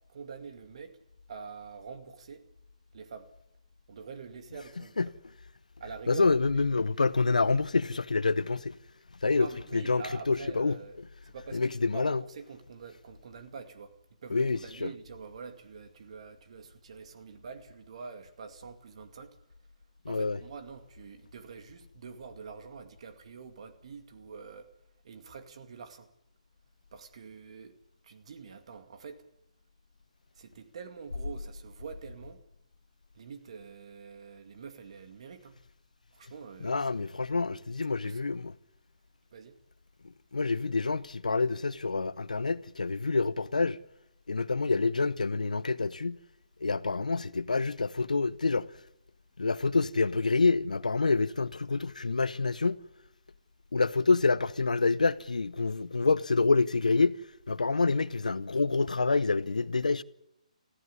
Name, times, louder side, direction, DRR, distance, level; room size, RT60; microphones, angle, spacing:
voice 1, 0.1-1.0 1.3-2.4 2.9-3.3 3.9-5.1 5.8-6.6 9.4-11.0 11.2-14.0 14.2-19.4 20.1-24.7 25.0-26.1 26.9-27.8 28.0-29.3 30.4-32.4 33.1-35.6 36.1-37.1 37.8-38.2 39.3-39.6, right 5 dB, 55° right, 2.2 m, -46 dB
voice 2, 6.1-8.7 9.2-9.5 9.7-10.8 11.5-12.2 14.3-14.9 20.0-20.4 36.6-38.4 40.3-43.8 44.3-46.2 46.6-48.7 49.4-52.8 53.7-57.2 57.5-60.0, left 3 dB, 85° left, 0.8 m, -27 dB
18.5 x 15.0 x 9.8 m
hypercardioid pair, 145°, 4 cm